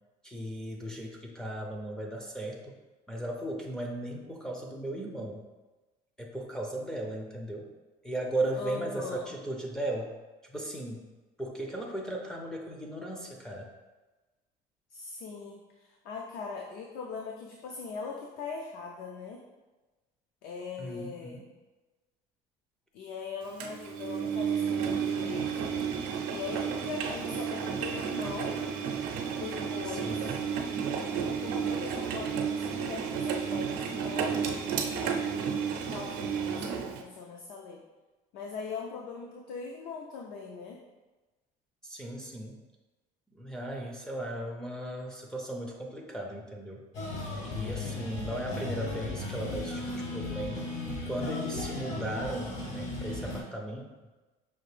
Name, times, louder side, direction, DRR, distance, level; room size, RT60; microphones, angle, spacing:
voice 1, 0.2-2.8 3.1-5.4 6.2-7.7 8.0-10.1 10.5-11.1 11.4-13.7 20.8-21.5 29.9-30.4 41.8-42.6 43.3-46.8 47.4-50.7 51.0-53.9, right 1 dB, 5° left, -1 dB, 0.4 m, -36 dB
voice 2, 8.5-9.3 14.9-19.4 20.4-21.4 22.9-25.7 26.3-28.6 29.3-30.3 31.3-35.2 35.9-37.8 38.3-40.8 47.4-48.1, left 5 dB, 70° left, 0 dB, 0.5 m, -41 dB
Engine, 23.6-37.0, right 7 dB, 85° right, 0.5 m, -32 dB
sound 1, 46.9-53.4, left 2 dB, 50° left, 1.0 m, -36 dB
5.7 x 2.5 x 3.2 m, 1.2 s
cardioid pair, 160°, 16 cm